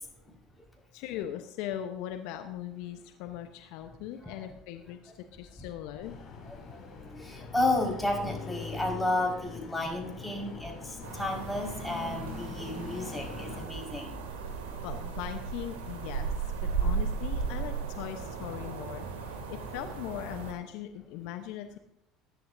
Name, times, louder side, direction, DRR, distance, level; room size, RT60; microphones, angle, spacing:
voice 1, 0.9-6.2 14.8-16.3 16.8-21.8, left 11 dB, 65° left, 7 dB, 1.0 m, -39 dB
sound 1, 6.0-13.6, left 5 dB, 45° left, 6.0 m, -43 dB
voice 2, 6.7-14.2, left 1 dB, 5° left, 0 dB, 5.2 m, -32 dB
sound 2, 11.0-20.5, right 5 dB, 70° right, 2.4 m, -35 dB
20.5 x 11.0 x 2.7 m, 0.79 s
hypercardioid pair, 65°, 0 cm